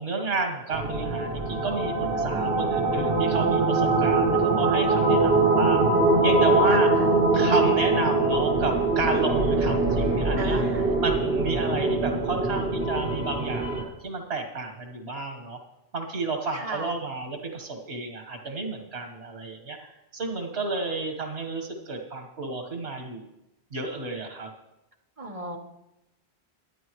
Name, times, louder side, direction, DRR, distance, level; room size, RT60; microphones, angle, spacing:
voice 1, 0.0-5.8 6.2-6.9 7.3-10.6 11.0-15.6 15.9-19.8 20.1-23.3 23.7-24.5, right 3 dB, 85° right, 3 dB, 1.8 m, -31 dB
sound 1, 0.7-13.8, right 2 dB, 65° right, 1.8 m, -23 dB
voice 2, 6.7-7.1 10.4-10.9 16.5-16.9 25.2-25.6, right 2 dB, 35° right, 2 dB, 1.3 m, -36 dB
23.0 x 9.4 x 3.1 m, 0.93 s
omnidirectional pair, 1.1 m